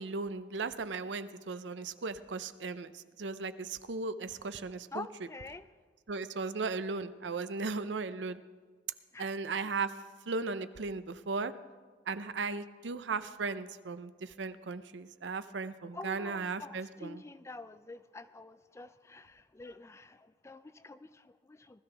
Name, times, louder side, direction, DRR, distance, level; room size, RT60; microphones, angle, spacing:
voice 1, 0.0-5.1 6.1-8.4 9.2-9.9 10.3-11.5 12.1-17.2, right 4 dB, 80° right, 0.6 m, -36 dB
voice 2, 4.9-5.7 9.1-9.3 9.6-9.7 15.9-21.8, left 3 dB, 15° left, 0.4 m, -47 dB
20.0 x 13.5 x 3.4 m
head